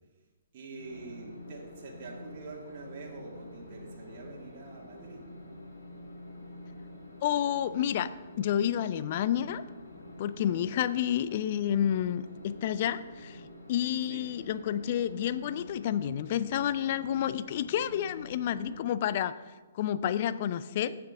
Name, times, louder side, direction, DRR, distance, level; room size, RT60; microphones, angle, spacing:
voice 1, 0.5-5.2 10.3-10.8 14.0-14.3, right 3 dB, 45° right, -2 dB, 1.9 m, -46 dB
sound 1, 0.8-18.8, left 1 dB, 85° left, 2.9 m, -48 dB
voice 2, 7.2-8.1 8.4-9.6 10.2-13.4 13.7-19.4 19.7-21.0, left 10 dB, 45° left, 15 dB, 0.4 m, -30 dB
15.5 x 6.0 x 3.7 m, 1.3 s
figure-of-eight pair, 125°, 0 cm